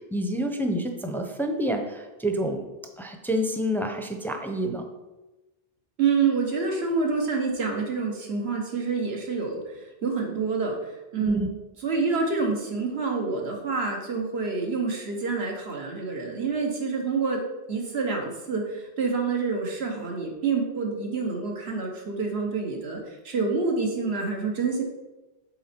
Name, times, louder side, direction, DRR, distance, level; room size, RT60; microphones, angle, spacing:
voice 1, 0.1-2.6 3.0-4.8 11.2-11.5, equal, 5° left, 4 dB, 0.5 m, -28 dB
voice 2, 6.0-11.5 11.8-17.4 17.7-24.8, right 4 dB, 85° right, 1 dB, 1.5 m, -27 dB
7.4 x 4.2 x 4.4 m, 1.1 s
omnidirectional pair, 1.0 m